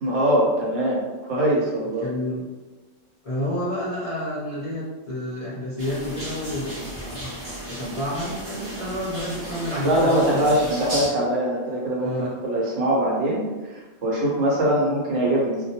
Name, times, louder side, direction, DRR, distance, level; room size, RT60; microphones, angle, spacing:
voice 1, 0.0-2.1 9.8-13.4 13.7-15.6, right 1 dB, 65° right, -4 dB, 0.9 m, -22 dB
voice 2, 2.0-2.5 3.2-7.4 7.7-10.7 12.0-12.3, equal, 45° left, -10 dB, 0.4 m, -30 dB
sound 1, 5.8-11.1, equal, 35° right, 0.5 m, -35 dB
2.2 x 2.1 x 2.7 m, 1.2 s
omnidirectional pair, 1.4 m